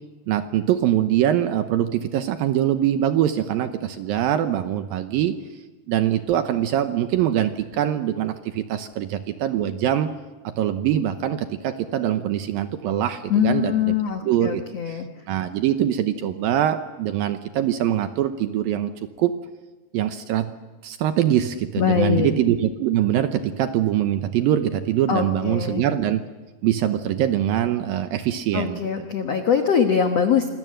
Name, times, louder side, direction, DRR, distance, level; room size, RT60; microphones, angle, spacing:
voice 1, 0.3-5.4 5.9-10.1 10.4-14.0 14.2-15.0 15.3-18.9 19.2-19.4 19.9-20.5 20.8-26.2 26.6-28.8, right 11 dB, 75° right, 9 dB, 2.3 m, -23 dB
voice 2, 13.3-15.1 21.8-22.3 25.1-25.8 28.5-30.5, left 7 dB, 75° left, 5 dB, 1.4 m, -22 dB
27.0 x 21.0 x 7.7 m, 1.2 s
omnidirectional pair, 4.9 m